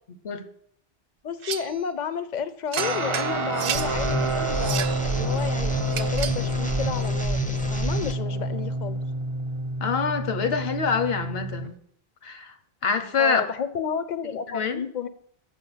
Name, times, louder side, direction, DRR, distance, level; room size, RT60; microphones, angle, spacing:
voice 1, 1.2-9.0 13.2-15.1, left 7 dB, 50° left, 13 dB, 0.7 m, -31 dB
sound 1, 1.4-1.8 2.7-3.9 4.5-5.0 5.9-6.5, right 9 dB, 65° right, 0.7 m, -32 dB
Guitar, 2.8-11.7, right 2 dB, 35° right, 0.7 m, -29 dB
sound 2, 3.7-8.1, equal, 10° left, 0.6 m, -29 dB
voice 2, 9.8-11.7 12.2-12.5 12.8-13.4 14.2-14.8, left 5 dB, 75° left, 9 dB, 1.1 m, -26 dB
7.5 x 5.6 x 7.2 m, 0.66 s
omnidirectional pair, 1.0 m